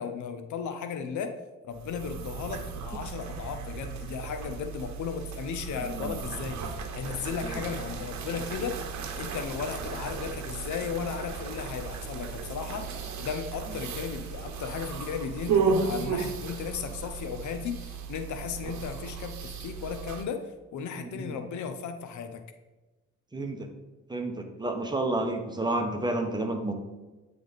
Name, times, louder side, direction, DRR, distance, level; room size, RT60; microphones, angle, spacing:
voice 1, 0.0-1.4 1.7-6.6 6.9-8.8 9.2-12.9 13.2-22.4, left 6 dB, 75° left, 7 dB, 0.7 m, -35 dB
sound 1, 1.7-20.2, right 5 dB, 65° right, 0.9 m, -34 dB
voice 2, 21.0-21.4 23.3-23.7 24.1-26.7, right 2 dB, 15° right, 4 dB, 0.9 m, -30 dB
8.8 x 3.4 x 4.0 m, 1.1 s
cardioid pair, 90°, 30 cm